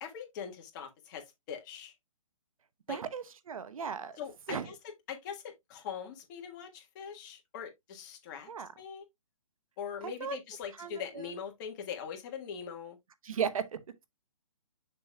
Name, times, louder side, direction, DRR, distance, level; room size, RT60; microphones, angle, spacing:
voice 1, 0.0-1.9 2.9-3.0 4.2-8.5 8.8-9.0 9.8-13.0, left 7 dB, 35° left, 1.5 m, -42 dB
voice 2, 2.9-4.2 4.5-4.7 8.5-8.7 10.0-10.4 10.8-11.2 13.2-13.8, right 7 dB, 75° right, 0.9 m, -36 dB
6.8 x 6.2 x 2.2 m
hypercardioid pair, 150°, 18 cm